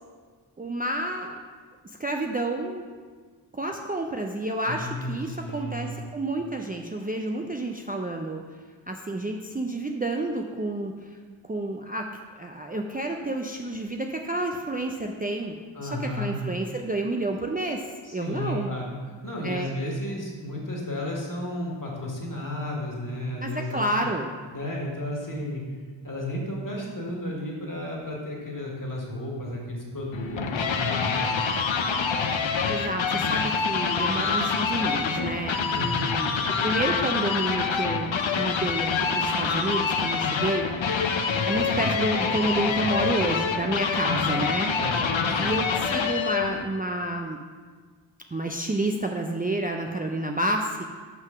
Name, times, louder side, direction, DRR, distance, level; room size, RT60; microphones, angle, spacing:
voice 1, 0.6-1.4 2.0-2.9 3.5-8.4 8.9-11.2 11.5-12.1 12.3-17.8 18.1-18.7 19.4-19.7 23.4-24.3 32.7-40.7 41.2-44.7 45.4-47.4 48.3-50.8, right 1 dB, 20° right, 2 dB, 0.5 m, -29 dB
voice 2, 4.7-6.0 15.7-16.4 18.0-18.9 19.2-24.1 24.5-25.6 26.0-31.5 35.7-36.2 44.8-45.5, left 1 dB, 40° left, -2 dB, 2.0 m, -33 dB
sound 1, 30.1-46.6, left 5 dB, 70° left, 0.7 m, -26 dB
5.9 x 5.7 x 5.7 m, 1.6 s
wide cardioid pair, 65°, 49 cm